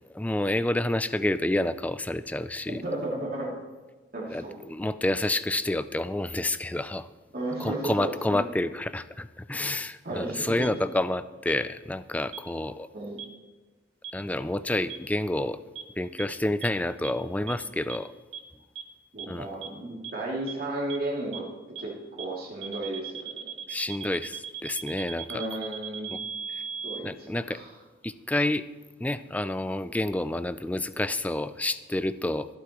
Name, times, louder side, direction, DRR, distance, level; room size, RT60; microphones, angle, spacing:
voice 1, 0.1-2.8 4.3-7.1 7.6-12.9 14.1-15.6 16.0-18.1 19.3-19.5 23.7-25.4 26.1-26.2 27.0-27.6 28.0-28.7 29.0-32.5, left 1 dB, 10° left, 13 dB, 0.3 m, -29 dB
voice 2, 2.7-3.6 4.1-4.6 7.3-8.4 10.0-10.6 12.9-13.2 19.1-21.4 21.8-21.9 22.2-23.5 25.3-26.1 26.8-27.7, right 1 dB, 50° right, -4 dB, 2.7 m, -34 dB
sound 1, 10.6-10.7 11.5-11.6 12.3-12.4 13.2-13.3 14.0-14.1 14.9-15.0 15.8-15.9 16.2-16.3 16.6-16.7 17.0-17.1 17.5-17.6 17.9-18.0 18.3-18.4 18.8-18.9 19.2-19.3 19.6-19.7 20.0-20.1 20.5-20.6 20.9-21.0 21.3-21.4 21.8-21.9 22.2-22.3 22.6-27.0, right 8 dB, 85° right, 1.5 m, -37 dB
23.5 x 8.3 x 3.0 m, 1.3 s
head